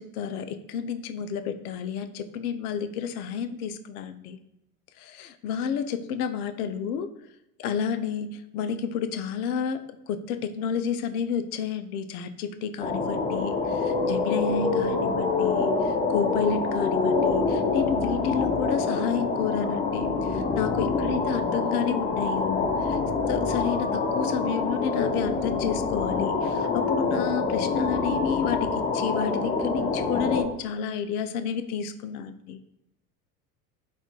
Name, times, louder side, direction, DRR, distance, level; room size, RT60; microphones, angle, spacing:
voice 1, 0.0-4.4 5.0-7.1 7.6-23.0 23.3-32.6, left 7 dB, 65° left, 10 dB, 0.5 m, -30 dB
sound 1, 12.8-30.4, left 4 dB, 15° left, 0.5 m, -26 dB
4.1 x 2.4 x 2.9 m, 0.87 s
figure-of-eight pair, 75°, 49 cm